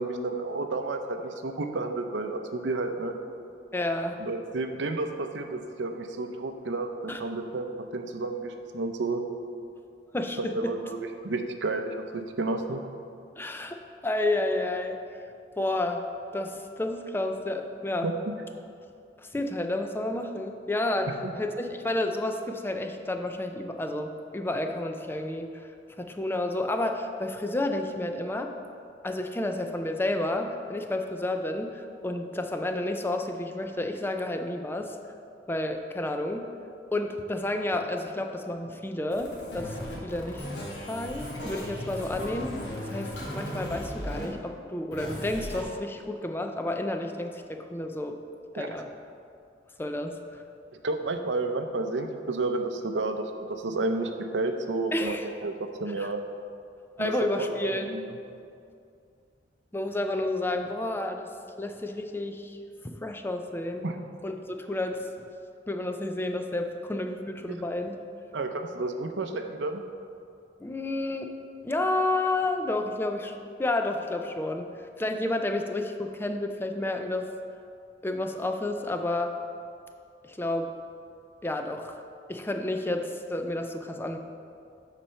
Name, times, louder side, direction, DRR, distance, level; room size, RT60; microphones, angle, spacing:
voice 1, 0.0-3.1 4.2-7.7 7.9-9.2 10.4-12.8 18.0-18.3 21.2-21.3 48.6-48.7 50.8-56.2 57.0-58.1 63.8-64.0 67.5-67.6 68.3-69.8, right 2 dB, 90° right, 6 dB, 0.6 m, -31 dB
voice 2, 3.7-4.2 7.1-7.2 10.1-10.7 13.4-15.0 15.6-16.0 16.3-18.1 19.2-25.7 26.0-28.5 29.0-35.0 35.5-36.5 36.9-40.5 40.9-42.5 42.9-48.2 48.5-48.9 49.8-50.4 54.9-55.3 56.0-56.1 57.0-57.9 59.7-61.3 61.6-62.6 62.8-63.8 64.2-65.1 65.7-68.0 70.6-71.3 71.6-74.7 75.0-77.3 78.0-79.3 80.2-80.7 81.4-81.9 82.3-84.2, left 2 dB, 10° left, 5 dB, 0.4 m, -30 dB
sound 1, 39.1-44.3 44.9-45.6, equal, 70° left, 1.7 m, -36 dB
8.6 x 4.2 x 5.6 m, 2.4 s
head